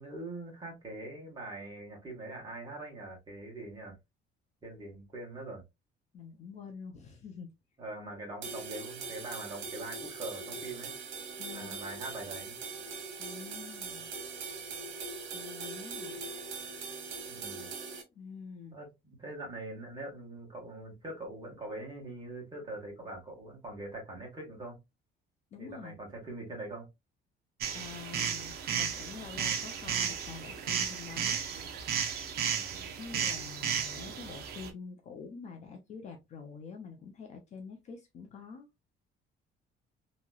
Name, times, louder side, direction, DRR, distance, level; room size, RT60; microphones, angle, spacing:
voice 1, 0.0-4.0 4.6-5.6 7.8-10.9 11.5-12.6 17.2-17.7 18.7-24.8 25.6-26.9 32.5-33.0, right 2 dB, 20° right, 1.4 m, -43 dB
voice 2, 6.1-7.5 11.4-11.8 13.2-14.1 15.3-16.2 18.2-18.8 25.5-26.0 27.7-31.5 33.0-38.7, left 5 dB, 35° left, 0.4 m, -46 dB
sound 1, 8.4-18.0, right 4 dB, 80° right, 1.1 m, -41 dB
sound 2, 27.6-34.7, right 7 dB, 55° right, 0.6 m, -34 dB
3.0 x 2.7 x 2.2 m
cardioid pair, 175°, 20 cm